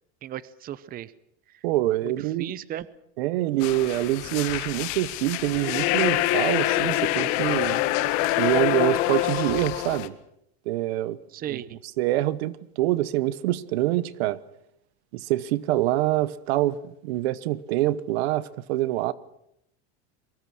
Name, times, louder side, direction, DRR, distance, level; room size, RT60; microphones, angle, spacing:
voice 1, 0.2-1.1 1.5-1.6 2.0-2.1 2.4-2.9 11.3-11.8, right 11 dB, 30° right, 0.8 m, -35 dB
voice 2, 1.6-2.5 3.2-7.8 8.4-10.1 10.7-11.2 11.5-11.6 12.0-14.4 15.1-19.1, right 15 dB, 80° right, 1.2 m, -25 dB
sound 1, 3.6-10.1, left 16 dB, 60° left, 1.8 m, -25 dB
23.5 x 22.5 x 6.3 m
supercardioid pair, 145°, 31 cm